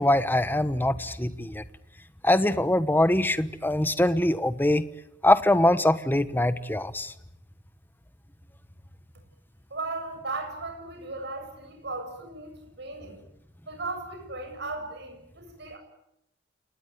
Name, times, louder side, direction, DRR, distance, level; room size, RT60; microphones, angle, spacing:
voice 1, 0.0-1.6 2.2-4.9 5.2-7.1, left 1 dB, 10° left, 13 dB, 1.1 m, -23 dB
voice 2, 9.7-13.2 13.7-15.8, right 3 dB, 60° right, 5 dB, 7.8 m, -36 dB
28.0 x 20.0 x 9.3 m, 0.82 s
head